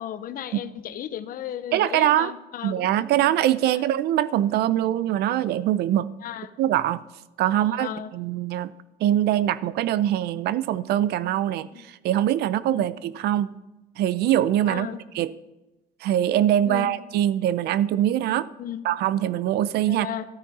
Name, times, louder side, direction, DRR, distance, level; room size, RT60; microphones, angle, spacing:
voice 1, 0.0-2.9 3.7-3.8 6.2-6.5 7.5-8.1 11.7-11.8 12.7-12.9 14.7-15.0 16.6-17.0 18.6-18.8 19.9-20.3, left 11 dB, 55° left, 13 dB, 0.7 m, -35 dB
voice 2, 1.7-2.3 2.6-6.1 6.6-7.0 7.4-8.7 9.0-13.5 14.0-14.9 15.1-15.3 16.0-18.5 18.8-20.1, right 12 dB, 75° right, 17 dB, 0.5 m, -23 dB
13.5 x 9.1 x 4.2 m, 1.0 s
cardioid pair, 110°, 17 cm